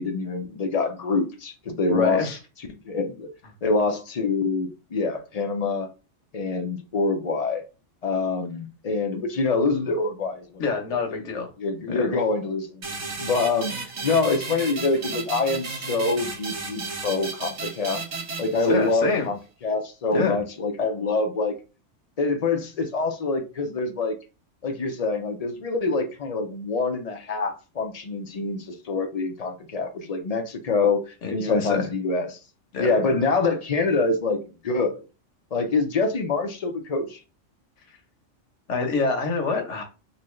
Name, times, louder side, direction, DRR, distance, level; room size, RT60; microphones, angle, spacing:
voice 1, 0.0-2.3 2.9-3.3 3.6-5.9 6.3-7.6 8.0-10.5 11.6-12.8 13.2-13.7 14.0-18.0 18.4-21.5 22.2-24.2 24.6-32.4 32.8-35.0 35.5-37.2, left 3 dB, 45° left, 0.6 m, -25 dB
voice 2, 1.9-2.4 10.6-11.5 11.9-12.1 18.7-19.3 20.1-20.4 31.2-31.9 32.7-32.9 38.7-39.8, left 4 dB, 80° left, 1.3 m, -26 dB
sound 1, 12.8-19.2, right 4 dB, 70° right, 1.3 m, -34 dB
3.9 x 2.7 x 3.1 m
omnidirectional pair, 1.2 m